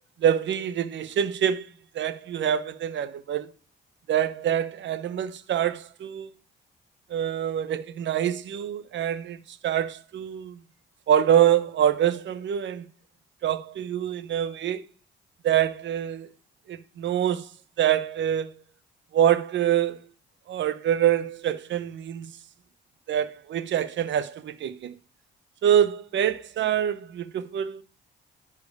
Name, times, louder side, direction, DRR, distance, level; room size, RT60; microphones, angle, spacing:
voice 1, 0.2-3.5 4.1-6.3 7.1-10.5 11.1-12.9 13.4-14.8 15.4-16.3 16.7-17.5 17.8-18.5 19.1-20.0 20.5-22.3 23.1-24.9 25.6-27.8, right 10 dB, 65° right, 1.0 m, -25 dB
10.5 x 4.8 x 4.7 m
cardioid pair, 90°, 20 cm